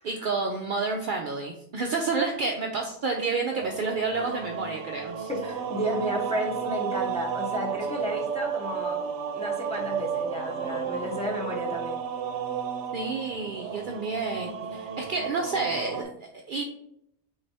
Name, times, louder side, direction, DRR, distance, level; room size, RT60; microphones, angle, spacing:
voice 1, 0.0-5.3 12.9-16.6, right 4 dB, 60° right, 1 dB, 0.6 m, -30 dB
sound 1, 3.5-16.0, right 7 dB, 80° right, 0.9 m, -33 dB
voice 2, 5.3-9.0 9.3-12.0, equal, 5° left, -3 dB, 0.8 m, -32 dB
3.9 x 3.3 x 4.0 m, 0.75 s
omnidirectional pair, 1.2 m